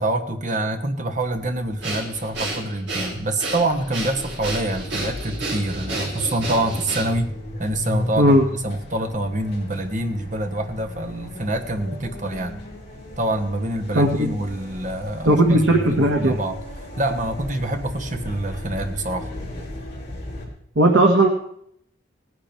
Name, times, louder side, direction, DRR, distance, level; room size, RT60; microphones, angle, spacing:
voice 1, 0.0-7.3 7.6-12.6 13.2-19.3, right 1 dB, 40° right, 5 dB, 1.3 m, -26 dB
sound 1, 1.2-20.5, left 1 dB, 30° left, 5.0 m, -36 dB
Breathing, 1.8-7.3, right 2 dB, 60° right, 4.9 m, -30 dB
voice 2, 13.9-14.3 15.2-16.4 20.7-21.3, right 1 dB, 80° right, 1 dB, 1.6 m, -16 dB
18.0 x 10.5 x 4.4 m, 0.70 s
head